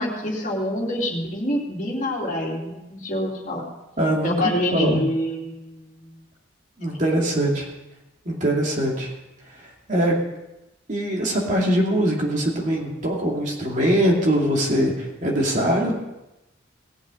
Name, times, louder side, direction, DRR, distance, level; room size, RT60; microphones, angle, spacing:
voice 1, 0.0-3.7 4.2-6.2, left 1 dB, 40° left, -2 dB, 2.6 m, -26 dB
voice 2, 4.0-5.0 6.8-7.7 8.3-9.1 9.5-10.2 10.9-15.9, right 1 dB, 40° right, -1 dB, 2.5 m, -22 dB
18.5 x 7.4 x 5.0 m, 0.96 s
head